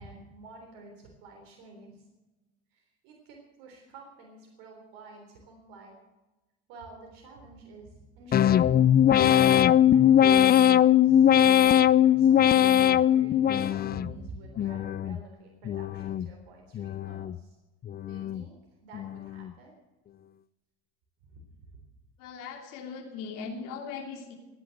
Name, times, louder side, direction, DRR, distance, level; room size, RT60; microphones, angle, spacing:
voice 1, 0.0-2.1 2.7-6.0 6.7-11.3 12.0-17.6 18.1-18.6 18.8-19.7 21.3-21.4, right 3 dB, 70° right, 1 dB, 3.7 m, -49 dB
sound 1, 8.3-14.1 14.6-15.2 15.6-16.3 16.7-17.4 17.8-18.4 18.9-19.5, left 10 dB, 30° left, 0.4 m, -21 dB
voice 2, 22.2-24.4, left 5 dB, 65° left, 1 dB, 2.9 m, -39 dB
16.0 x 10.0 x 7.9 m, 1.1 s
hypercardioid pair, 80°, 35 cm